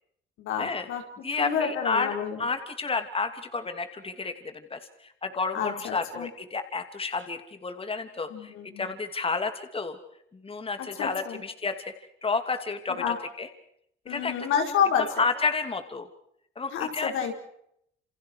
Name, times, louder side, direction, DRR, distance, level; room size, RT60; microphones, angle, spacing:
voice 1, 0.4-1.0 1.4-2.4 5.5-6.3 8.3-8.9 10.8-11.4 13.0-13.2 14.0-15.2 16.7-17.3, left 7 dB, 90° left, 3 dB, 5.1 m, -29 dB
voice 2, 1.2-2.1 2.4-10.0 10.4-11.9 12.2-13.5 14.1-14.3 15.2-16.1 16.6-17.1, left 4 dB, 30° left, 8 dB, 2.8 m, -31 dB
28.5 x 28.5 x 4.8 m, 0.73 s
cardioid pair, 90°, 20 cm